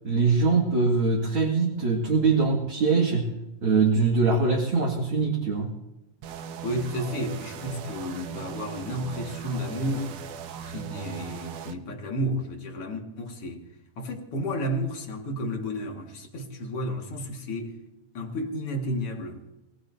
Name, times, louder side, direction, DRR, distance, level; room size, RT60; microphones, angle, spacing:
voice 1, 0.0-3.3 3.6-5.7, right 4 dB, 45° right, 2.6 m, -23 dB
sound 1, 6.2-11.8, right 8 dB, 70° right, 1.7 m, -39 dB
voice 2, 6.6-10.1 10.7-13.7 14.0-17.8 18.1-19.4, equal, 50° left, 2.6 m, -32 dB
24.5 x 19.0 x 2.7 m
omnidirectional pair, 3.7 m